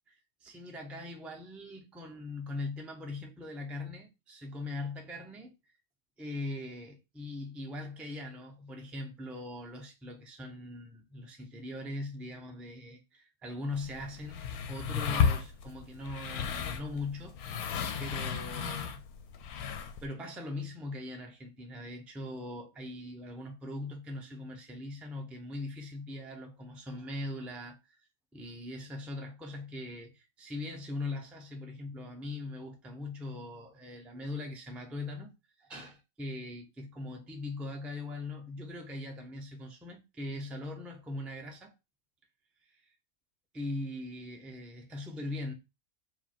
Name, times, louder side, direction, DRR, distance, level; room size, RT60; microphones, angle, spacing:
voice 1, 0.1-5.5 6.2-17.7 18.0-19.0 20.0-28.0 28.3-35.3 35.6-41.7 42.6-42.9 43.5-45.5, left 2 dB, ahead, 0.5 m, -41 dB
sound 1, 13.7-20.1, left 7 dB, 85° left, 1.2 m, -34 dB
4.9 x 2.2 x 4.4 m
omnidirectional pair, 1.5 m